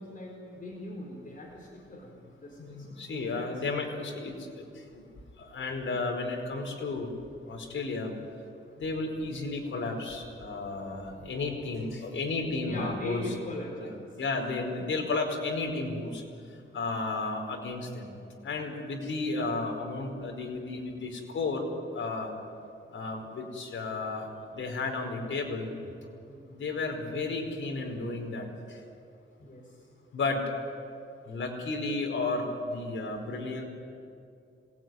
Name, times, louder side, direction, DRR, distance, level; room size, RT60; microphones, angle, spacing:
voice 1, 0.0-3.5 11.2-11.8 12.7-14.1 14.8-14.9 26.3-26.5 29.4-29.7, left 1 dB, 40° left, -1 dB, 4.3 m, -42 dB
voice 2, 2.6-4.6 4.9-5.0 5.4-7.1 7.5-8.1 8.8-13.3 13.8-16.2 16.7-18.1 18.4-22.3 22.9-25.7 26.5-28.8 30.1-30.5 31.3-33.6, left 3 dB, 70° left, 2 dB, 4.9 m, -33 dB
26.5 x 20.0 x 9.5 m, 2.5 s
wide cardioid pair, 175°, 21 cm